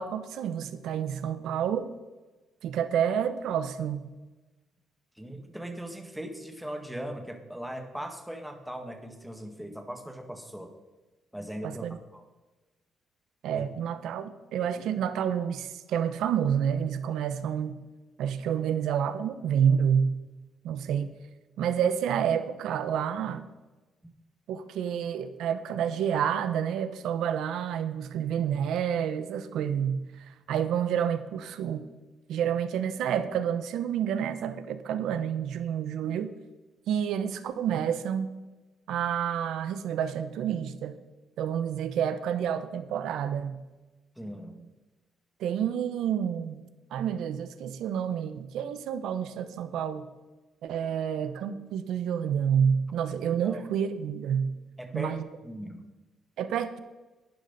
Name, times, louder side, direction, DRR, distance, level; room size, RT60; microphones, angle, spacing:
voice 1, 0.0-1.9 2.6-4.1 11.6-12.0 13.4-17.8 18.2-20.1 20.6-21.1 21.6-23.4 24.5-31.9 32.3-36.3 36.9-38.3 38.9-41.0 41.4-43.6 45.4-50.1 50.6-54.5 54.9-55.2 56.4-56.8, right 8 dB, 80° right, 12 dB, 0.8 m, -29 dB
voice 2, 5.2-10.7 11.3-12.2 13.5-13.6 44.2-44.7 53.4-53.6 54.8-55.9, right 1 dB, 5° right, 5 dB, 1.7 m, -39 dB
11.5 x 10.0 x 4.1 m, 1.2 s
cardioid pair, 90°, 0 cm